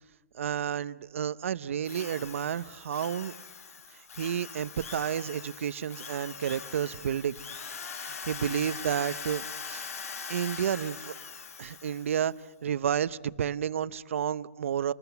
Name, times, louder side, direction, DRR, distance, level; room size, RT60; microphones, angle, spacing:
voice 1, 0.4-3.3 4.2-7.3 8.0-9.9 10.3-11.1 11.6-12.3 12.6-14.9, right 9 dB, 60° right, 16 dB, 0.8 m, -31 dB
Drill, 1.9-12.3, left 6 dB, 80° left, 1.5 m, -42 dB
27.5 x 20.5 x 7.0 m, 1.2 s
hypercardioid pair, 165°, 8 cm